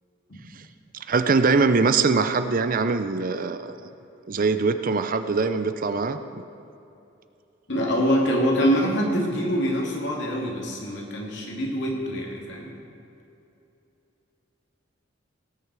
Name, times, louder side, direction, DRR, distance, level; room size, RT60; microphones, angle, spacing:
voice 1, 1.1-3.8 4.3-6.4, right 4 dB, 45° right, 10 dB, 0.6 m, -22 dB
voice 2, 7.7-12.7, equal, 65° left, -1 dB, 2.6 m, -25 dB
18.0 x 9.7 x 4.8 m, 2.8 s
head